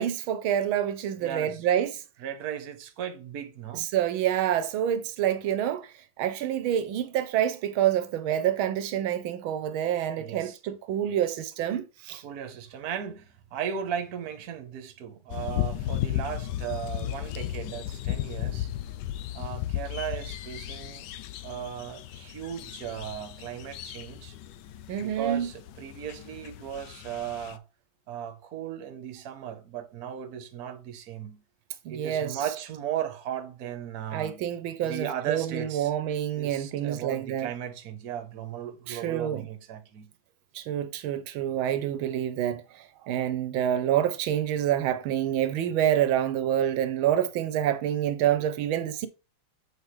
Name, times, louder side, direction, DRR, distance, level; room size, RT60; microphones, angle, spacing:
voice 1, 0.0-2.0 3.7-12.2 24.9-25.5 31.8-32.4 34.1-37.5 38.9-39.5 40.5-49.1, right 10 dB, 80° right, 1.5 m, -27 dB
voice 2, 1.2-1.6 2.2-3.9 10.2-10.6 12.2-18.7 19.3-21.1 21.4-24.3 25.0-27.6 28.1-31.4 31.9-34.4 34.8-35.9 36.3-40.1, right 9 dB, 55° right, 1.3 m, -36 dB
sound 1, 15.3-27.6, left 13 dB, 70° left, 1.1 m, -35 dB
8.0 x 5.0 x 3.2 m
omnidirectional pair, 2.2 m